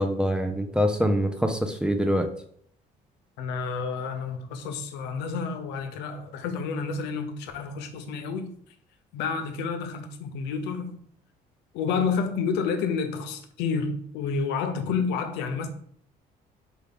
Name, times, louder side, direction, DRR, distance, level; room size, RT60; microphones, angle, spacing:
voice 1, 0.0-2.3, equal, 5° right, 0.4 m, -24 dB
voice 2, 3.4-8.5 9.1-11.0 11.7-15.7, left 5 dB, 90° left, 0.6 m, -29 dB
4.6 x 2.3 x 3.4 m
cardioid pair, 110°, 17 cm